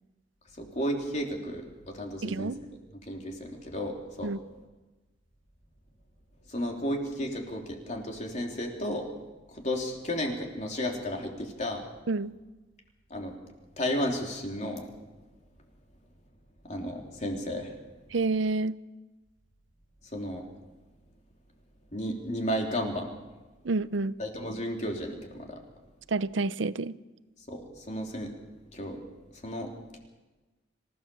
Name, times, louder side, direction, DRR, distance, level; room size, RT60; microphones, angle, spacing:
voice 1, 0.6-2.5 3.1-4.3 6.5-9.1 9.5-11.8 13.1-13.3 13.8-14.9 16.7-17.7 20.1-20.5 21.9-23.1 24.2-25.6 27.5-28.3 28.7-29.0 29.4-30.0, equal, 40° left, 3.2 m, -33 dB
voice 2, 2.2-2.6 4.2-4.4 12.1-12.3 18.1-18.8 23.6-24.1 26.1-27.0, right 3 dB, 85° right, 0.7 m, -28 dB
26.0 x 16.0 x 7.0 m
head